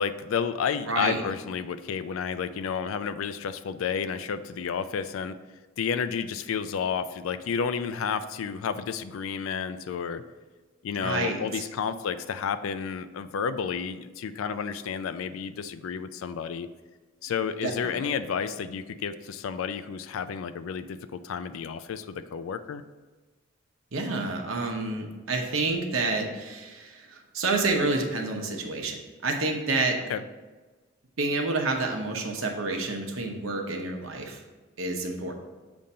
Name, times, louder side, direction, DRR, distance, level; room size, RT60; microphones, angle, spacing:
voice 1, 0.0-5.4 5.8-10.2 10.8-16.7 17.2-22.8 30.1-30.2, left 6 dB, 80° left, 12 dB, 0.3 m, -31 dB
voice 2, 0.9-1.2 11.0-11.6 11.9-12.0 17.6-18.1 23.9-30.0 31.2-34.4 34.8-35.3, right 3 dB, 90° right, 3 dB, 0.8 m, -29 dB
7.0 x 2.6 x 5.4 m, 1.3 s
head